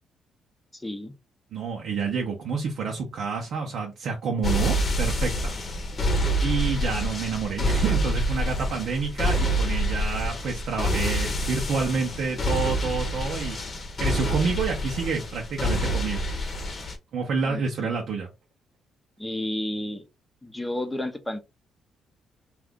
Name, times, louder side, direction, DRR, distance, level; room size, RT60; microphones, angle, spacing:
voice 1, 0.7-1.1 8.6-8.7 17.4-17.9 19.2-20.0 20.4-21.4, left 1 dB, 10° left, 0.6 m, -32 dB
voice 2, 1.5-5.5 6.4-13.6 14.0-16.2 17.1-18.3, right 5 dB, 70° right, 0.7 m, -28 dB
sound 1, 4.4-16.9, equal, 40° left, 0.8 m, -27 dB
2.5 x 2.4 x 3.5 m
cardioid pair, 90°, 0 cm